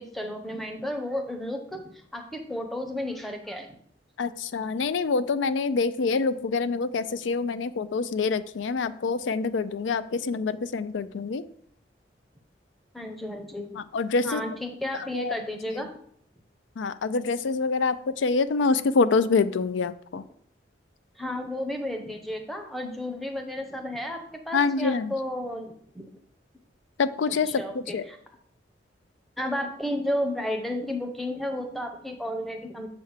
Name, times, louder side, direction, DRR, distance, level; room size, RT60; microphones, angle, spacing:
voice 1, 0.0-3.8 12.9-13.8 14.2-15.9 21.2-26.1 27.5-28.2 29.4-32.9, left 1 dB, ahead, 4 dB, 0.8 m, -32 dB
voice 2, 4.2-11.4 13.8-14.4 14.9-15.3 15.7-15.8 16.8-20.2 24.5-25.2 27.0-28.1, left 4 dB, 85° left, 14 dB, 0.4 m, -26 dB
7.4 x 3.5 x 6.4 m, 0.63 s
head